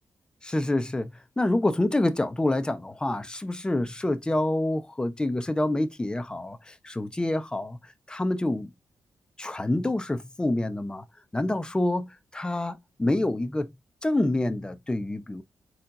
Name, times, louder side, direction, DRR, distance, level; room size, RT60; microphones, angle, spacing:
voice 1, 0.4-7.8 8.1-8.7 9.4-11.0 11.3-13.7 14.0-15.4, left 1 dB, 15° left, 0.9 m, -27 dB
4.4 x 4.4 x 2.6 m
cardioid pair, 80°, 6 cm